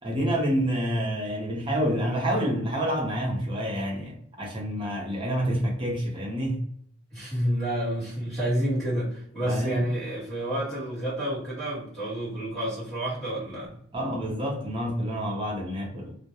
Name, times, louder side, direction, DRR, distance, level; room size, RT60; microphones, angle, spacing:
voice 1, 0.0-6.6 9.4-9.9 13.9-16.1, equal, 25° right, 0.5 m, -28 dB
voice 2, 7.1-13.7, right 1 dB, ahead, 1.3 m, -29 dB
2.2 x 2.1 x 2.8 m
head